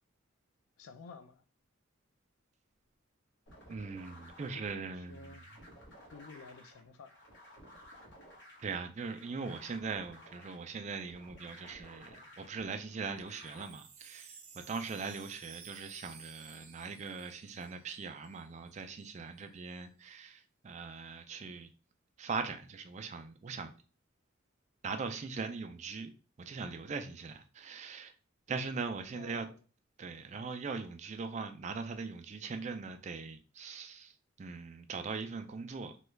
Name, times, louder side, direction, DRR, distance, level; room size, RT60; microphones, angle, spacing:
voice 1, 0.8-1.4 4.5-5.4 6.1-7.2 29.1-29.6, left 4 dB, 90° left, 0.4 m, -52 dB
sound 1, 3.5-13.6, equal, 60° left, 1.1 m, -55 dB
voice 2, 3.7-5.4 8.6-14.3 14.7-21.7 22.2-23.7 24.8-26.1 26.4-28.1 28.5-29.5 30.0-34.1 34.4-35.9, right 4 dB, 35° right, 0.3 m, -40 dB
Wind chime, 13.2-18.4 18.7-18.8 19.0-19.4, right 6 dB, 85° right, 0.6 m, -55 dB
3.0 x 2.3 x 3.2 m
head